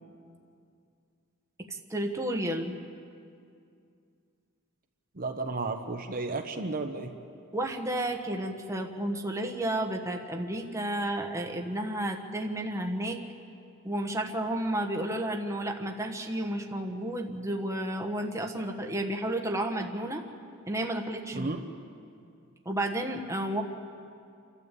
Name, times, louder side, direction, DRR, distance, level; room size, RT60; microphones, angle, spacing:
voice 1, 1.9-2.8 7.5-13.2 13.8-20.2 20.7-21.5 22.6-23.6, right 1 dB, 15° right, 3 dB, 1.3 m, -32 dB
voice 2, 5.2-7.1 21.3-21.6, right 3 dB, 45° right, 4 dB, 1.1 m, -33 dB
29.0 x 12.5 x 8.4 m, 2.4 s
head